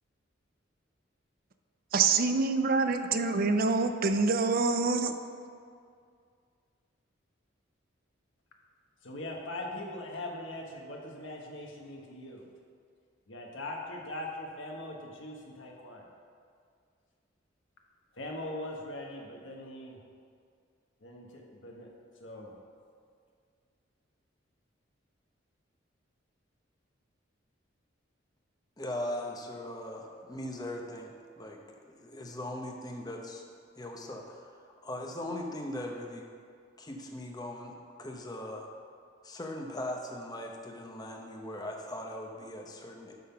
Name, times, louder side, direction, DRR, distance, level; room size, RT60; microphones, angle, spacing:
voice 1, 1.9-5.1, right 4 dB, 50° right, 8 dB, 0.5 m, -26 dB
voice 2, 9.0-12.5 13.3-16.1 18.1-20.0 21.0-21.9 22.2-22.5, left 1 dB, 75° left, 0 dB, 1.2 m, -41 dB
voice 3, 28.8-33.4 33.8-36.2 36.8-38.7 39.2-43.1, left 1 dB, 20° left, 1 dB, 0.8 m, -39 dB
11.0 x 3.8 x 5.8 m, 2.2 s
head